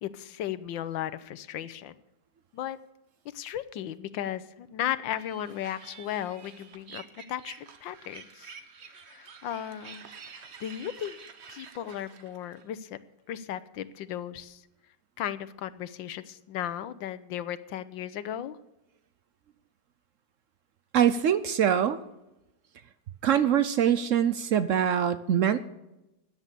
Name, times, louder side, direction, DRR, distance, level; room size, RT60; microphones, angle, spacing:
voice 1, 0.0-1.9 2.5-2.8 3.3-7.0 7.3-8.5 8.9-11.2 11.5-13.0 13.3-14.6 15.2-18.6 24.0-24.1, left 11 dB, 80° left, 14 dB, 1.5 m, -36 dB
sound 1, 5.2-12.6, right 6 dB, 45° right, 1.0 m, -49 dB
voice 2, 20.9-22.0 23.2-25.6, right 9 dB, 70° right, 13 dB, 0.7 m, -23 dB
13.5 x 9.8 x 6.8 m, 0.94 s
omnidirectional pair, 2.0 m